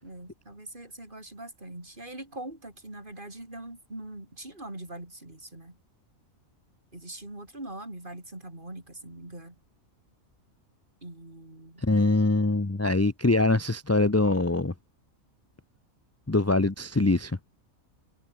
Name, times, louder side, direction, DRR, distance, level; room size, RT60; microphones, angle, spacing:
voice 1, 0.0-5.8 6.9-9.6 11.0-11.8, right 1 dB, 35° right, 5.3 m, -42 dB
voice 2, 11.8-14.7 16.3-17.4, left 2 dB, 15° left, 0.6 m, -23 dB
omnidirectional pair, 1.5 m